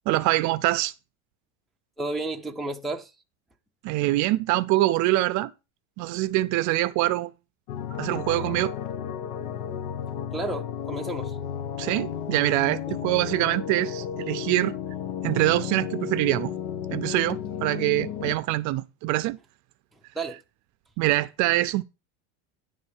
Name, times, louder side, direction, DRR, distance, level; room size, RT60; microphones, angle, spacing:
voice 1, 0.1-0.9 3.8-5.5 6.0-7.3 8.0-8.7 11.8-14.7 15.2-16.5 16.9-19.4 21.0-21.8, right 17 dB, 50° right, 0.5 m, -24 dB
voice 2, 2.0-3.1 10.3-11.4 12.9-13.0 20.1-20.4, right 2 dB, ahead, 0.6 m, -32 dB
sound 1, 7.7-18.4, left 8 dB, 75° left, 1.0 m, -33 dB
11.0 x 3.7 x 7.1 m
cardioid pair, 155°, 38 cm